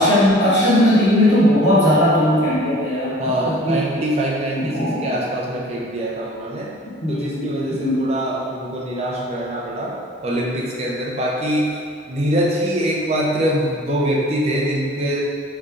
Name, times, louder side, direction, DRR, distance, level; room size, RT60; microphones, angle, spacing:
voice 1, 0.0-3.9 4.5-5.1 7.0-8.0, left 1 dB, 60° left, -8 dB, 1.0 m, -18 dB
voice 2, 3.2-6.8 7.1-11.7 12.1-15.2, right 1 dB, 30° right, -4 dB, 0.6 m, -23 dB
3.8 x 3.3 x 3.3 m, 2.2 s
head